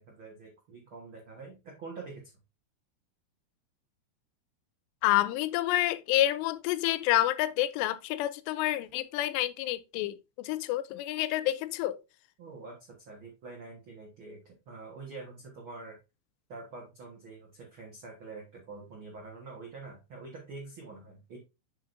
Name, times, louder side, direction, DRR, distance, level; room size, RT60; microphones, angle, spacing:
voice 1, 0.0-2.3 12.4-16.0 16.5-21.4, right 3 dB, 70° right, 1.2 m, -46 dB
voice 2, 5.0-12.0, left 15 dB, 85° left, 2.7 m, -28 dB
7.9 x 6.1 x 2.6 m
omnidirectional pair, 4.9 m